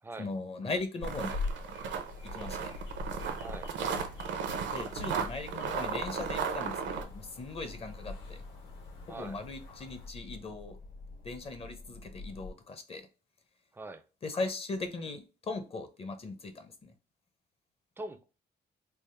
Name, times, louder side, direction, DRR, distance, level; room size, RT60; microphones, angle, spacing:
voice 1, 0.2-1.4 2.2-2.7 4.7-8.4 9.1-10.8 11.2-13.1 14.2-16.9, left 3 dB, 30° left, 0.6 m, -39 dB
sound 1, 1.0-10.1, left 3 dB, 80° left, 1.5 m, -43 dB
sound 2, 1.0-7.0, right 6 dB, 85° right, 0.6 m, -35 dB
sound 3, 2.8-12.5, left 3 dB, 50° left, 1.1 m, -48 dB
voice 2, 3.4-3.7 9.1-9.4 13.7-14.0 18.0-18.2, right 2 dB, 10° right, 0.4 m, -42 dB
3.4 x 2.0 x 4.2 m
cardioid pair, 145°, 19 cm